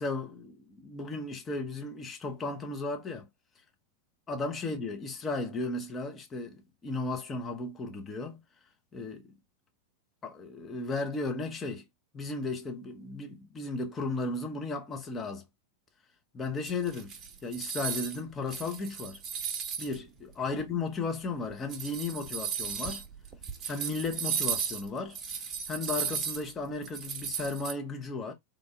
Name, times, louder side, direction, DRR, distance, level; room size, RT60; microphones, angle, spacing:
voice 1, 0.0-3.3 4.3-8.4 8.9-9.3 10.2-11.8 12.1-15.4 16.3-17.1 17.4-19.2 19.8-23.0 23.7-25.2 25.7-28.3, left 3 dB, 20° left, 1.2 m, -35 dB
sound 1, 16.7-18.2 18.5-20.0 20.6-20.7 21.5-27.7, right 7 dB, 25° right, 1.0 m, -35 dB
3.8 x 3.7 x 3.5 m
figure-of-eight pair, 90°, 0 cm